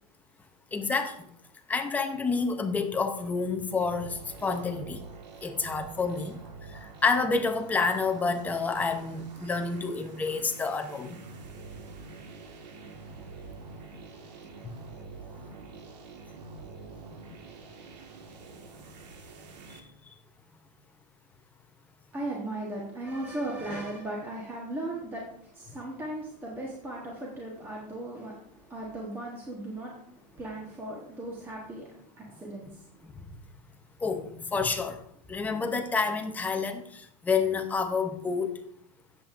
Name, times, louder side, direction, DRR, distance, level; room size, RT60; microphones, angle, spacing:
voice 1, 0.7-1.3 1.7-5.0 5.4-6.4 6.7-11.2 14.6-14.7 19.7-19.9 33.0-33.2 34.0-35.0 35.3-38.6, left 4 dB, 5° left, 6 dB, 0.5 m, -29 dB
sound 1, 3.8-19.8, right 4 dB, 80° right, 1.6 m, -46 dB
voice 2, 22.1-33.1, right 1 dB, 10° right, -2 dB, 1.1 m, -37 dB
15.5 x 7.5 x 2.5 m, 0.73 s
supercardioid pair, 160°, 21 cm